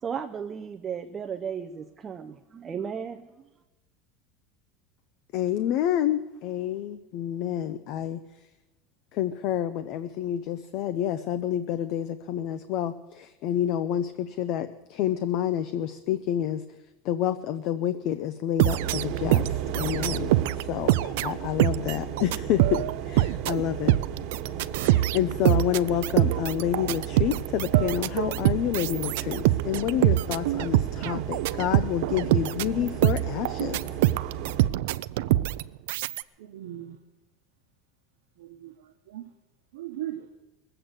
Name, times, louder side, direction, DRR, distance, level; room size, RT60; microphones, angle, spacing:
voice 1, 0.0-3.3, right 7 dB, 20° right, 5 dB, 0.6 m, -35 dB
voice 2, 5.3-8.2 9.1-16.6 17.0-23.9 24.8-33.8, left 11 dB, 45° left, 11 dB, 0.6 m, -29 dB
sound 1, 18.6-20.6 20.9-36.2, right 16 dB, 75° right, 0.4 m, -24 dB
sound 2, 18.7-34.7, right 9 dB, 50° right, 1.6 m, -35 dB
voice 3, 36.4-37.0 38.4-39.3 39.7-40.3, right 13 dB, 90° right, 0 dB, 1.0 m, -38 dB
20.0 x 7.9 x 8.0 m, 1.1 s
supercardioid pair, 165°, 0 cm